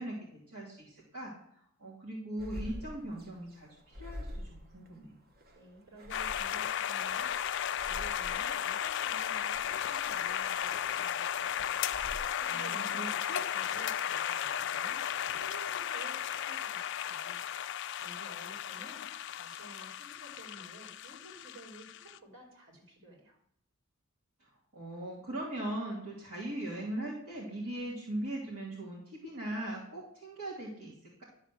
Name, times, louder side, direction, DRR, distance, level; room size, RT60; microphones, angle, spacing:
voice 1, 0.0-1.3 1.8-5.1 12.5-13.4 24.4-30.9, right 1 dB, 85° right, -7 dB, 2.5 m, -40 dB
sound 1, 2.4-12.2, left 1 dB, 45° right, 1.1 m, -47 dB
voice 2, 5.5-11.8 12.3-17.4 17.9-19.0 19.3-23.4, right 1 dB, 60° right, -2 dB, 3.8 m, -53 dB
sound 2, 6.1-22.2, left 9 dB, 55° left, 0.3 m, -35 dB
11.0 x 4.1 x 7.4 m, 0.69 s
head